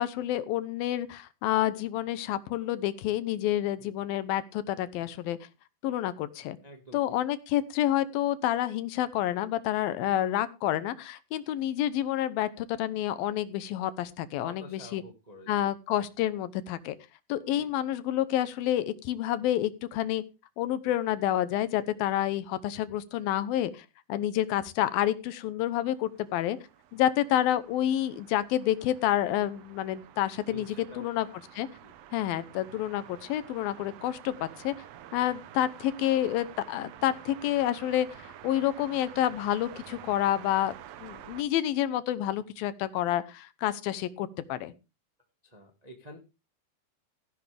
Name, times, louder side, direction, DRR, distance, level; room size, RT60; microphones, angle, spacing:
voice 1, 0.0-5.4 5.8-6.6 6.9-15.0 15.5-17.0 17.3-20.2 20.6-26.6 26.9-31.3 31.5-31.7 32.1-34.7 35.1-40.7 41.0-44.7, left 12 dB, 80° left, 14 dB, 2.7 m, -29 dB
voice 2, 6.6-7.0 14.4-15.7 17.5-17.7 30.5-31.1 31.7-31.9 32.3-32.4 45.4-46.2, equal, 25° right, 3 dB, 0.8 m, -48 dB
sound 1, 25.7-41.4, right 11 dB, 80° right, 1.5 m, -49 dB
15.0 x 10.5 x 3.4 m, 0.28 s
omnidirectional pair, 4.2 m